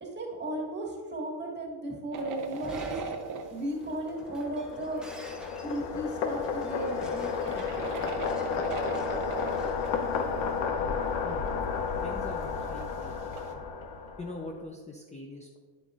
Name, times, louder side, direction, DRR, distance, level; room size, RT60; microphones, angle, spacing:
voice 1, 0.0-3.0 3.5-5.1 5.6-7.7, right 1 dB, 25° right, -2 dB, 1.9 m, -35 dB
sound 1, 2.1-3.9 4.5-4.6 5.7-10.3 10.6-10.7 12.4-13.5, right 5 dB, 45° right, 0.9 m, -39 dB
Shatter, 2.5-10.5, right 1 dB, ahead, 1.1 m, -50 dB
sound 2, 3.8-14.5, left 6 dB, 80° left, 0.9 m, -32 dB
voice 2, 12.0-13.6 14.2-15.6, left 2 dB, 15° left, 1 dB, 0.6 m, -43 dB
9.2 x 7.6 x 2.5 m, 1.4 s
cardioid pair, 115°, 45 cm